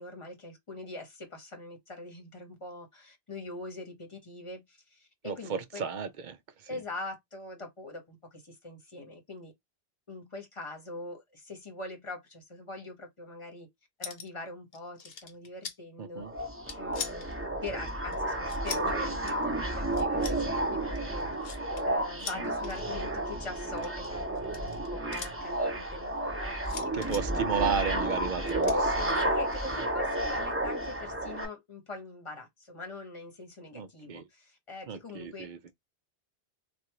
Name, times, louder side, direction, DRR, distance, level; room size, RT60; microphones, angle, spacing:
voice 1, 0.0-5.8 6.7-9.5 10.1-13.7 14.0-16.2 16.8-21.3 21.8-26.6 26.8-27.1 29.2-35.7, left 2 dB, 30° left, 1.1 m, -43 dB
voice 2, 5.2-6.8 16.0-16.3 26.9-29.3 33.7-34.3 34.9-35.6, right 6 dB, 55° right, 0.5 m, -34 dB
sound 1, 14.0-14.4 14.7-15.8 16.4-17.3 18.1-18.9 19.3-19.4 19.9-20.4 20.9-21.8 22.2-22.8 23.7-25.3 26.6-27.2 28.5-28.8, left 6 dB, 60° left, 0.9 m, -41 dB
sound 2, 16.2-31.4, right 1 dB, 15° right, 0.7 m, -31 dB
3.4 x 2.4 x 2.9 m
omnidirectional pair, 1.1 m